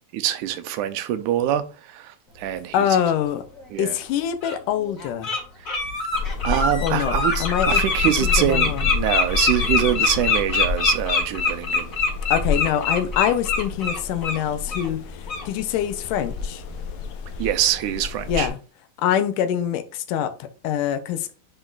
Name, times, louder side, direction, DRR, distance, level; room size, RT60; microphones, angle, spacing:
voice 1, 0.1-2.8 3.7-4.0 6.1-11.9 17.4-18.5, right 11 dB, 80° right, 2.0 m, -25 dB
voice 2, 2.7-3.4 3.8-5.3 6.8-7.8 8.2-8.9 12.3-16.6 18.3-18.6 19.0-21.3, left 9 dB, 85° left, 2.3 m, -24 dB
Bird, 3.6-3.7 4.4-4.6 5.0-5.4 5.6-14.4 14.7-14.9 15.3-15.4, left 4 dB, 30° left, 1.7 m, -24 dB
sound 1, 6.1-18.5, left 4 dB, 65° left, 1.9 m, -30 dB
10.0 x 3.9 x 2.4 m
omnidirectional pair, 3.7 m